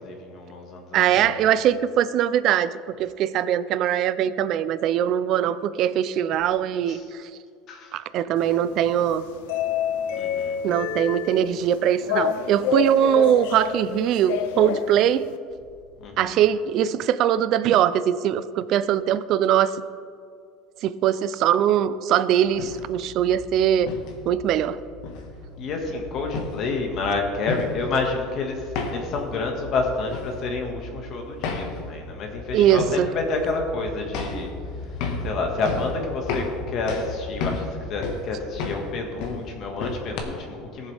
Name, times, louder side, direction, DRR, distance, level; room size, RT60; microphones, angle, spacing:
voice 1, 0.0-1.4 6.9-7.0 7.7-8.0 10.1-10.6 16.0-16.4 25.6-34.5 34.8-40.9, left 3 dB, 40° left, 2 dB, 1.7 m, -29 dB
voice 2, 0.9-2.7 3.0-7.0 7.9-9.2 10.6-15.2 16.2-19.8 20.8-23.9 24.3-24.8 32.5-33.1, right 10 dB, 45° right, 14 dB, 0.4 m, -21 dB
sound 1, 8.4-15.4, left 7 dB, 85° left, 0.6 m, -29 dB
sound 2, 22.4-40.2, left 3 dB, 60° left, 1.5 m, -34 dB
18.5 x 7.3 x 3.5 m, 2.3 s
cardioid pair, 155°, 0 cm